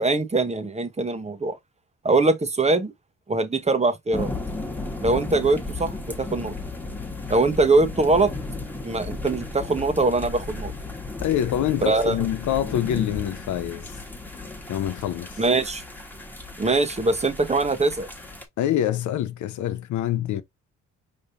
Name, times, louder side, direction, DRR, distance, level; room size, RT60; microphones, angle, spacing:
voice 1, 0.0-1.6 2.0-2.9 3.3-4.3 5.0-6.5 7.3-8.3 8.8-10.7 11.9-12.2 15.4-15.8 16.6-18.1, right 3 dB, 20° right, 1.0 m, -22 dB
sound 1, 4.1-18.4, left 3 dB, 5° left, 1.5 m, -35 dB
voice 2, 11.2-14.0 14.7-15.4 18.6-20.4, left 11 dB, 75° left, 0.7 m, -26 dB
5.1 x 3.5 x 2.6 m
cardioid pair, 90°, 30 cm